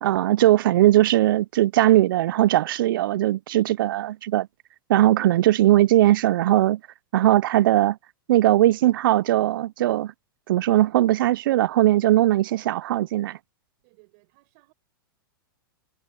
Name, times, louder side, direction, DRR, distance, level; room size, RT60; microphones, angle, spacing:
voice 1, 0.0-4.5 4.9-6.8 7.1-8.0 8.3-10.1 10.5-13.4, right 14 dB, 70° right, 0.5 m, -19 dB
voice 2, 13.8-14.7, right 29 dB, 50° right, 5.7 m, -59 dB
hypercardioid pair, 125°, 12 cm